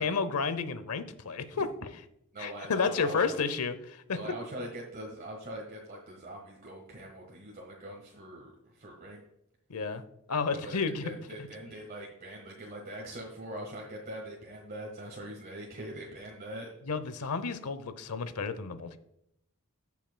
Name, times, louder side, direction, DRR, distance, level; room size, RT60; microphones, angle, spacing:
voice 1, 0.0-2.0 2.4-4.3 9.7-10.0 10.3-11.1 11.4-11.5 16.8-19.0, left 5 dB, 90° left, 12 dB, 0.8 m, -31 dB
voice 2, 2.3-3.4 4.1-9.2 10.6-16.7, right 1 dB, 40° right, -1 dB, 1.5 m, -42 dB
17.5 x 5.9 x 2.2 m, 0.79 s
head